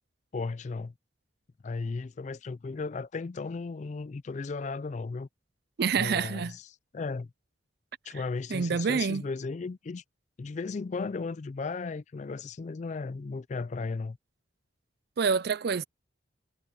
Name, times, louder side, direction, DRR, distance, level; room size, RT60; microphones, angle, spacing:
voice 1, 0.3-0.9 1.6-5.3 6.0-6.7 6.9-7.3 8.0-10.0 10.4-14.2, left 4 dB, 35° left, 0.3 m, -35 dB
voice 2, 5.8-6.6 8.5-9.2 15.2-15.8, right 5 dB, 55° right, 0.4 m, -27 dB
head